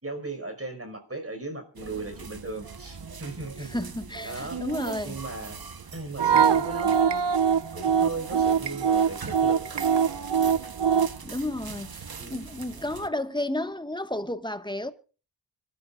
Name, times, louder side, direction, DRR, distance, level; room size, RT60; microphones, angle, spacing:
voice 1, 0.0-3.7 4.2-4.6 5.0-5.6 5.9-7.1 7.4-9.9 12.2-12.5, right 2 dB, 35° right, 5.4 m, -37 dB
sound 1, 1.8-13.1, right 5 dB, 60° right, 1.3 m, -41 dB
voice 2, 3.6-5.2 11.2-14.9, left 1 dB, 10° left, 1.7 m, -32 dB
sound 2, 6.2-11.2, right 7 dB, 80° right, 0.9 m, -23 dB
25.5 x 13.5 x 2.5 m
wide cardioid pair, 55°, 41 cm